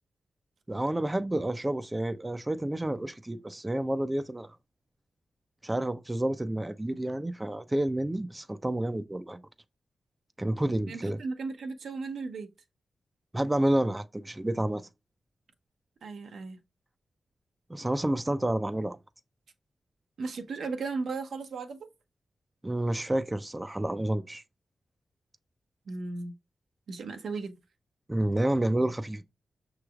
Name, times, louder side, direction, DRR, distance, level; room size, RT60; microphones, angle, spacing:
voice 1, 0.7-4.6 5.6-9.4 10.4-11.2 13.3-14.9 17.7-19.0 22.6-24.4 28.1-29.2, right 1 dB, 20° right, 0.5 m, -29 dB
voice 2, 10.7-12.5 16.0-16.6 20.2-21.9 25.9-26.3 26.9-27.6, right 4 dB, 80° right, 0.7 m, -36 dB
5.9 x 3.2 x 2.3 m
cardioid pair, 60°, 0 cm